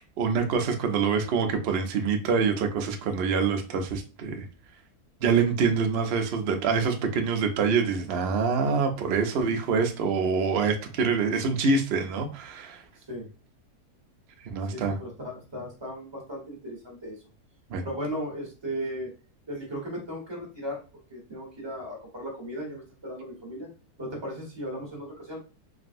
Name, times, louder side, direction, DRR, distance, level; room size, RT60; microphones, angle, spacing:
voice 1, 0.2-4.5 5.2-12.8 14.5-15.0 17.7-17.8, right 5 dB, 85° right, 4 dB, 0.5 m, -25 dB
voice 2, 13.0-13.3 14.7-17.2 17.8-19.1 19.5-20.8 21.1-23.7 24.0-25.4, equal, 20° right, -2 dB, 1.0 m, -36 dB
3.4 x 2.3 x 2.5 m, 0.33 s
omnidirectional pair, 1.7 m